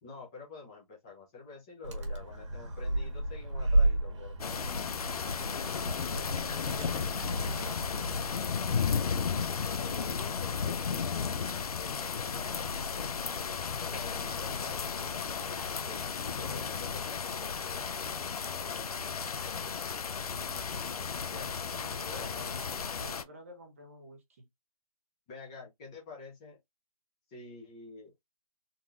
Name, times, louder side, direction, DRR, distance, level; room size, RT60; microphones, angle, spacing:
voice 1, 0.0-4.5 9.6-12.5 13.8-18.0 21.3-21.5 22.1-22.6 25.3-26.6 27.3-28.1, left 4 dB, 10° left, 0.6 m, -48 dB
Animal, 1.8-8.3, right 1 dB, 50° right, 1.6 m, -32 dB
sound 1, 4.4-23.2, left 6 dB, 85° left, 0.6 m, -34 dB
voice 2, 6.0-8.4 20.3-20.9 21.7-22.7 23.0-24.5, equal, 25° right, 0.7 m, -51 dB
3.9 x 2.9 x 2.5 m
hypercardioid pair, 175°, 19 cm